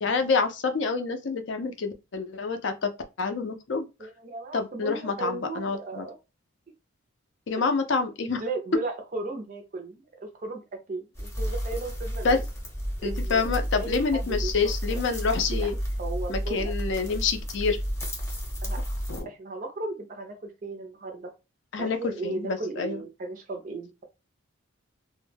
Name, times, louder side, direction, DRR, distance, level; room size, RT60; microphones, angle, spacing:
voice 1, 0.0-2.9 3.2-3.9 4.5-6.0 7.5-8.4 12.2-12.4 13.0-15.8 16.3-17.8 19.1-19.3 21.7-22.0 22.2-23.0, left 4 dB, 60° left, 0.4 m, -27 dB
voice 2, 4.0-6.2 8.4-10.6 10.9-12.4 13.0-13.5 13.8-14.5 14.9-15.0 15.5-15.7 16.0-16.7 18.6-18.8 19.2-21.3 21.8-24.0, right 3 dB, 40° right, 0.4 m, -36 dB
sound 1, 11.2-19.2, equal, 15° left, 0.7 m, -31 dB
2.1 x 2.0 x 3.2 m
head